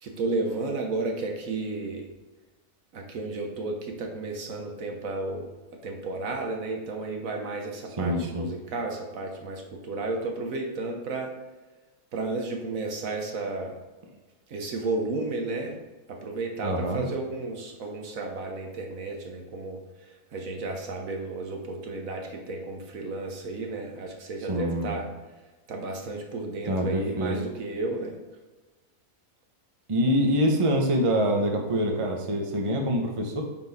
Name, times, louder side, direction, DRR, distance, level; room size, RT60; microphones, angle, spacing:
voice 1, 0.0-2.0 2.9-5.5 5.8-11.3 12.1-13.8 14.5-15.8 16.1-19.8 20.3-25.0 25.7-28.2, right 3 dB, 60° right, 2 dB, 1.3 m, -32 dB
voice 2, 8.0-8.5 16.6-17.0 24.4-24.9 26.6-27.4 29.9-33.4, equal, 25° right, 2 dB, 0.8 m, -25 dB
8.7 x 4.5 x 4.2 m, 1.2 s
omnidirectional pair, 1.7 m